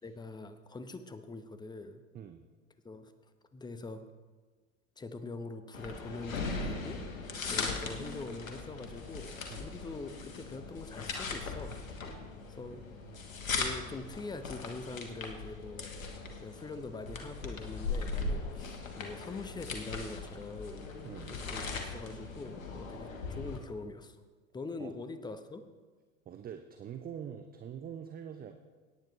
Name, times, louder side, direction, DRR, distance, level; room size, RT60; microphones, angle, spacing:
voice 1, 0.0-2.0 2.8-3.1 3.5-4.0 5.0-7.0 7.5-11.8 12.5-12.8 13.5-15.9 16.4-20.9 21.2-24.2 24.5-25.6, left 3 dB, 10° left, 10 dB, 0.8 m, -43 dB
sound 1, 5.7-23.6, left 4 dB, 80° left, 1.4 m, -39 dB
voice 2, 21.0-21.4 24.8-25.0 26.3-28.5, right 8 dB, 25° right, 7 dB, 0.6 m, -44 dB
17.5 x 9.2 x 3.1 m, 1.4 s
figure-of-eight pair, 80°, 39 cm